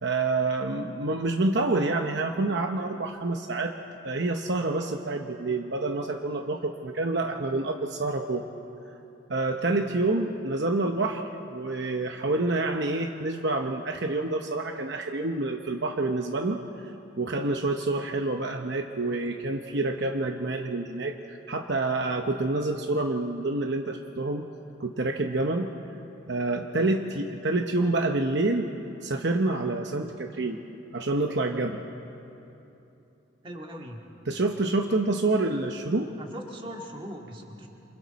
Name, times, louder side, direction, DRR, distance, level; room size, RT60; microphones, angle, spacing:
voice 1, 0.0-3.7 4.0-8.4 9.3-16.9 17.2-24.5 24.8-25.7 26.3-28.7 29.0-30.6 30.9-31.8 34.3-36.1, right 2 dB, 55° right, 4 dB, 0.9 m, -27 dB
voice 2, 33.4-34.0 36.2-37.7, equal, 25° right, 1 dB, 2.0 m, -40 dB
28.5 x 27.0 x 4.2 m, 2.9 s
head